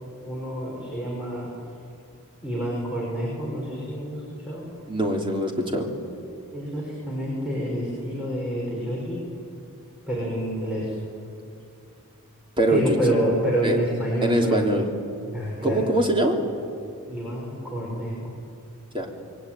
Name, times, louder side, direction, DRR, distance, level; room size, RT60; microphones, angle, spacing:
voice 1, 0.2-1.5 2.4-4.7 6.5-9.2 10.1-10.9 12.7-14.7 15.3-15.8 17.1-18.2, equal, 5° right, -5 dB, 6.2 m, -28 dB
voice 2, 4.9-5.9 12.6-13.1 13.6-13.8 14.2-14.8 15.6-16.4 18.9-19.1, right 1 dB, 25° right, 1 dB, 3.4 m, -23 dB
27.0 x 22.5 x 9.4 m, 2.5 s
head